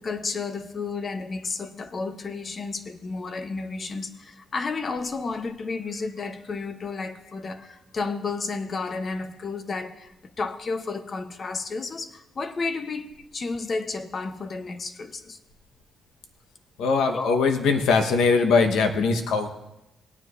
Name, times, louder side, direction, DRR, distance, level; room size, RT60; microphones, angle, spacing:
voice 1, 0.0-15.4 17.1-17.4, left 4 dB, 40° left, 10 dB, 0.8 m, -32 dB
voice 2, 16.8-19.5, left 4 dB, 85° left, 6 dB, 1.1 m, -21 dB
17.5 x 9.6 x 2.5 m, 0.94 s
cardioid pair, 110°, 0 cm